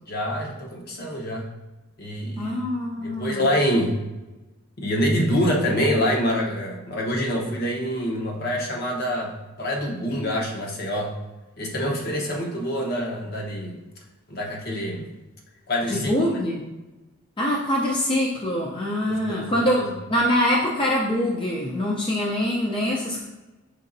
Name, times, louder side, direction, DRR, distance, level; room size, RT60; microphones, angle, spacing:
voice 1, 0.1-1.5 2.0-2.7 3.0-4.0 4.8-11.1 11.6-13.8 14.3-15.1 15.7-16.3 19.0-19.9, equal, 50° left, -1 dB, 0.9 m, -26 dB
voice 2, 2.4-3.5 15.9-16.6 17.4-19.8 20.1-23.2, left 1 dB, 25° left, -3 dB, 0.5 m, -24 dB
5.2 x 3.8 x 2.6 m, 1.1 s
head